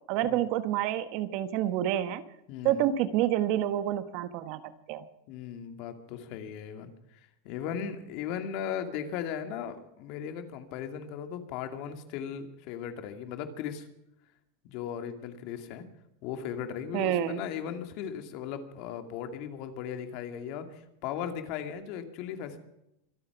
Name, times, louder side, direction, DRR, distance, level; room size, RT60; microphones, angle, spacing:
voice 1, 0.1-2.2 2.6-4.6 4.9-5.0 16.9-17.4, right 12 dB, 50° right, 12 dB, 1.4 m, -28 dB
voice 2, 2.5-2.8 5.3-6.9 7.4-13.9 14.6-15.9 16.2-22.6, left 8 dB, 50° left, 7 dB, 2.4 m, -37 dB
25.0 x 8.8 x 6.0 m, 0.82 s
supercardioid pair, 140°, 0 cm